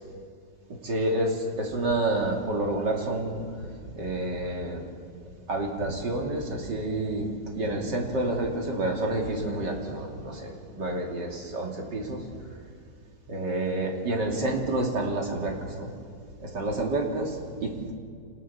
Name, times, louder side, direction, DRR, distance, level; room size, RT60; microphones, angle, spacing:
voice 1, 0.8-3.4 4.0-4.8 5.5-7.3 7.5-12.2 13.3-15.9 16.4-17.9, right 2 dB, 75° right, 1 dB, 3.5 m, -29 dB
26.5 x 20.0 x 7.0 m, 2.4 s
omnidirectional pair, 1.9 m